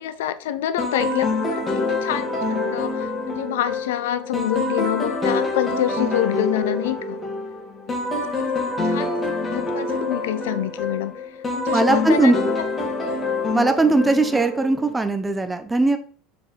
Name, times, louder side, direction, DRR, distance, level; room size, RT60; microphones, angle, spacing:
voice 1, 0.0-1.6 1.9-7.2 8.1-8.5 8.9-11.1 11.5-12.4, left 12 dB, 70° left, 0.5 m, -27 dB
sound 1, 0.8-15.0, left 3 dB, 25° left, 2.0 m, -26 dB
voice 2, 11.7-12.4 13.5-16.0, right 2 dB, 15° right, 0.9 m, -19 dB
5.9 x 4.7 x 4.0 m
figure-of-eight pair, 75°, 0 cm